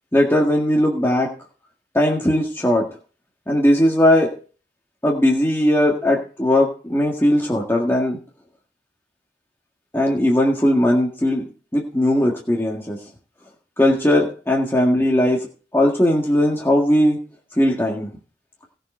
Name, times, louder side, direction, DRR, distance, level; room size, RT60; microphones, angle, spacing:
voice 1, 0.1-1.3 1.9-2.9 3.5-4.3 5.0-8.2 9.9-13.0 13.8-15.5 15.7-17.2 17.6-18.1, left 1 dB, 15° left, -2 dB, 1.7 m, -18 dB
18.0 x 6.7 x 4.4 m, 0.38 s
head